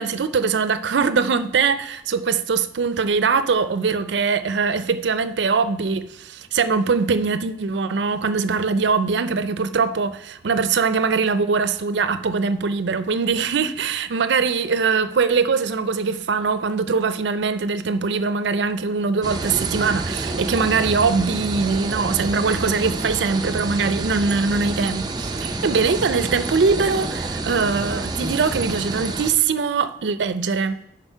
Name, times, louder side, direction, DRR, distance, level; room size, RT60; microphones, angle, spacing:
voice 1, 0.0-30.9, right 5 dB, 75° right, 0.5 m, -22 dB
sound 1, 19.2-29.3, right 3 dB, 25° right, 0.5 m, -28 dB
9.0 x 4.0 x 5.6 m
head